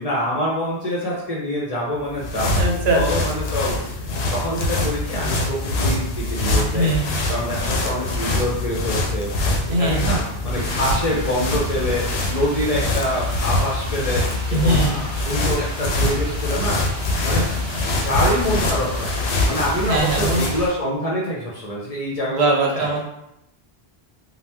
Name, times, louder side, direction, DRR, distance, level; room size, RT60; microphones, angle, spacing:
voice 1, 0.0-2.6 2.9-3.8 4.3-6.9 7.3-9.3 9.8-16.8 17.2-17.4 18.0-19.1 19.4-22.9, left 1 dB, 45° left, -5 dB, 0.6 m, -25 dB
sound 1, 2.0-20.7, left 2 dB, 75° left, 0.8 m, -24 dB
voice 2, 2.6-3.0 6.7-7.1 9.7-10.2 14.5-15.0 19.9-20.5 22.2-23.0, right 2 dB, 75° right, -1 dB, 0.9 m, -21 dB
sound 2, 10.5-20.7, equal, 30° right, 0.9 m, -34 dB
2.8 x 2.0 x 3.3 m, 0.81 s
omnidirectional pair, 1.1 m